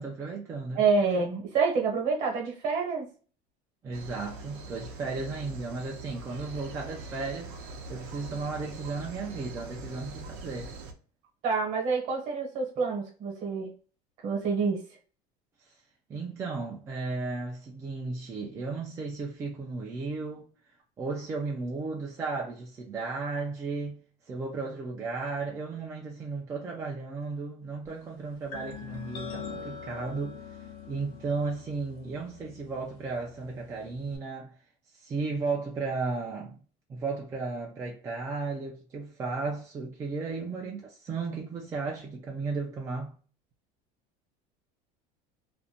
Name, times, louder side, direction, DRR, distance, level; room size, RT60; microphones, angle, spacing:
voice 1, 0.0-0.8 3.8-7.6 7.9-10.7 15.7-15.8 16.1-20.5 21.0-24.0 24.3-30.4 30.9-34.5 35.0-36.6 36.9-43.1, right 4 dB, 15° right, 0.3 m, -34 dB
voice 2, 0.7-3.1 11.4-13.7 14.2-14.8, right 4 dB, 45° right, 1.0 m, -27 dB
sound 1, 3.9-10.9, right 3 dB, 65° right, 0.6 m, -43 dB
sound 2, 28.5-34.2, left 6 dB, 80° left, 0.8 m, -43 dB
2.5 x 2.1 x 2.7 m
cardioid pair, 170°, 17 cm